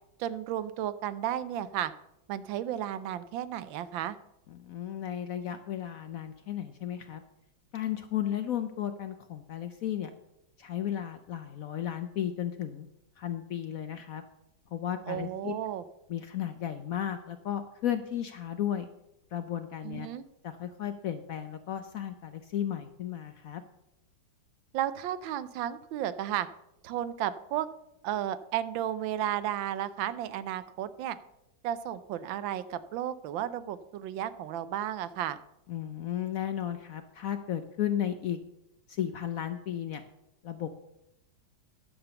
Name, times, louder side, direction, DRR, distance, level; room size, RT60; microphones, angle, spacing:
voice 1, 0.2-1.9 2.3-4.2 15.1-15.8 19.8-20.2 24.7-26.5 26.8-27.7 28.0-31.2 31.6-35.4, right 11 dB, 90° right, 14 dB, 1.4 m, -33 dB
voice 2, 4.5-7.2 7.7-10.1 10.6-12.9 13.2-14.2 14.7-15.5 16.1-18.9 19.3-20.1 20.4-23.6 35.7-38.4 38.9-40.0 40.4-40.7, left 10 dB, 70° left, 9 dB, 0.8 m, -34 dB
10.0 x 6.8 x 6.8 m, 0.87 s
omnidirectional pair, 2.0 m